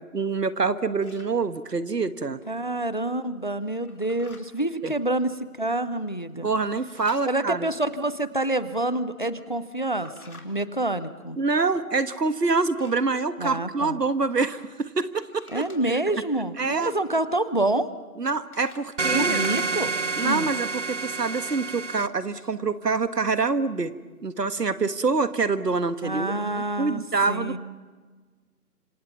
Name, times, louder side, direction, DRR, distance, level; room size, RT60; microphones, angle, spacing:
voice 1, 0.0-2.4 4.8-4.9 6.4-7.7 11.4-16.0 16.6-16.9 18.2-19.4 20.2-23.9 24.2-26.3 26.8-27.6, right 4 dB, 85° right, 12 dB, 1.6 m, -26 dB
sound 1, 1.0-1.3 3.8-4.4 6.9-7.6 9.8-10.5 12.8-13.1 15.2-15.8 18.5-18.9, left 2 dB, 65° left, 3.6 m, -50 dB
voice 2, 2.5-5.3 5.6-6.5 7.2-11.4 13.4-14.0 15.5-17.9 19.1-19.9 20.2-20.5 26.0-27.0 27.3-27.6, right 1 dB, 30° left, 15 dB, 0.7 m, -27 dB
sound 2, 19.0-22.1, right 4 dB, 50° right, 0.8 m, -28 dB
27.0 x 26.5 x 5.8 m, 1.4 s
figure-of-eight pair, 175°, 47 cm